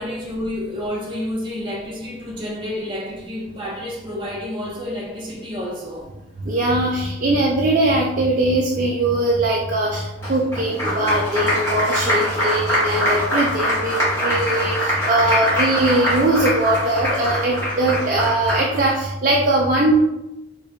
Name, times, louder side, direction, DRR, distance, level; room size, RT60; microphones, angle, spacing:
voice 1, 0.0-6.2, left 1 dB, 25° right, 0.8 m, -29 dB
voice 2, 6.4-19.9, right 1 dB, 40° right, 0.4 m, -20 dB
Applause, 10.2-19.0, equal, 15° left, 1.2 m, -23 dB
4.4 x 3.2 x 2.2 m
head